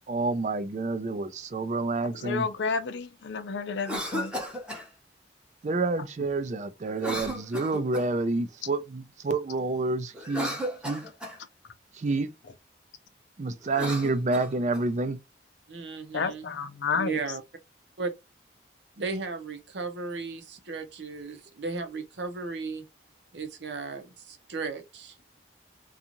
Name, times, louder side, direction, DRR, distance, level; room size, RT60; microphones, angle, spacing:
voice 1, 0.0-2.5 5.6-10.6 10.8-11.0 11.9-12.3 13.4-15.2, right 3 dB, 40° right, 0.4 m, -28 dB
voice 2, 2.2-4.3 16.1-17.1, left 5 dB, 90° left, 0.5 m, -30 dB
Cough, 3.7-4.9 7.0-8.2 10.1-11.4 13.6-14.9, equal, 5° right, 0.7 m, -35 dB
voice 3, 15.7-16.6 16.9-17.4 18.0-18.1 19.0-22.9 23.3-25.2, right 4 dB, 75° right, 0.7 m, -35 dB
2.6 x 2.4 x 2.9 m
head